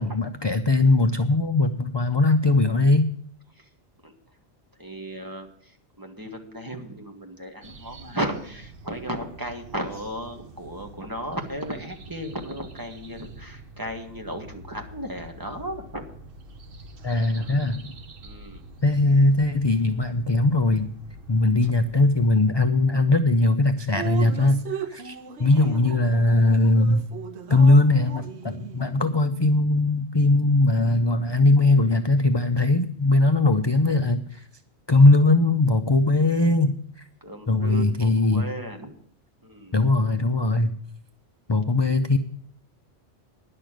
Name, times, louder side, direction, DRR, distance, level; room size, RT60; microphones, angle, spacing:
voice 1, 0.0-3.1 17.0-18.0 18.8-21.0 21.3-24.6 24.9-27.1 27.5-34.4 34.9-36.7 37.5-38.4 39.7-40.7 41.5-42.2, left 2 dB, 35° left, 8 dB, 0.4 m, -20 dB
voice 2, 4.0-4.4 4.8-16.1 17.3-17.6 18.2-18.6 21.6-21.7 25.4-25.8 37.2-38.9 39.4-39.8, right 1 dB, 20° right, 3 dB, 1.5 m, -35 dB
sound 1, 7.6-22.3, right 2 dB, 55° right, 1.1 m, -46 dB
Drip, 23.9-29.2, right 8 dB, 75° right, 1.1 m, -37 dB
10.5 x 6.6 x 9.0 m, 0.62 s
omnidirectional pair, 1.2 m